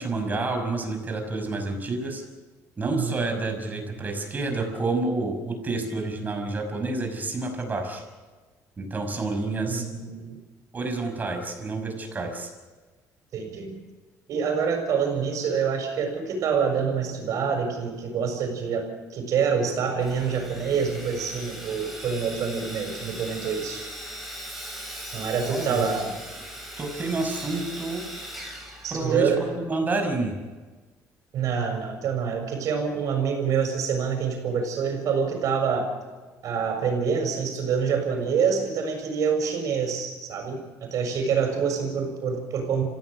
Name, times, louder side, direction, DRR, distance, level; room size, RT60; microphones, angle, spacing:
voice 1, 0.0-2.2 2.8-8.0 8.8-9.8 10.7-12.5 25.5-25.9 26.8-28.0 28.9-30.4, right 3 dB, 25° right, 4 dB, 5.8 m, -29 dB
voice 2, 9.7-10.4 13.3-13.8 14.3-23.8 25.1-26.1 28.8-29.4 31.3-35.9 36.4-42.8, right 6 dB, 60° right, 4 dB, 6.9 m, -26 dB
Sawing, 20.0-29.5, right 1 dB, ahead, 7.4 m, -39 dB
27.0 x 16.0 x 6.6 m, 1.3 s
cardioid pair, 115°, 6 cm